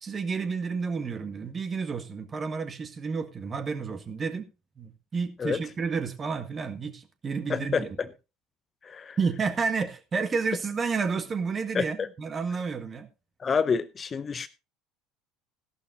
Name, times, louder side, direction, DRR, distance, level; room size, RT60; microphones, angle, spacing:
voice 1, 0.0-4.5 4.8-8.0 9.2-13.1, right 5 dB, 30° right, 1.7 m, -30 dB
voice 2, 7.5-7.8 8.8-9.2 11.7-12.1 13.4-14.5, left 5 dB, 30° left, 0.7 m, -28 dB
15.5 x 12.0 x 2.6 m
figure-of-eight pair, 65°, 0 cm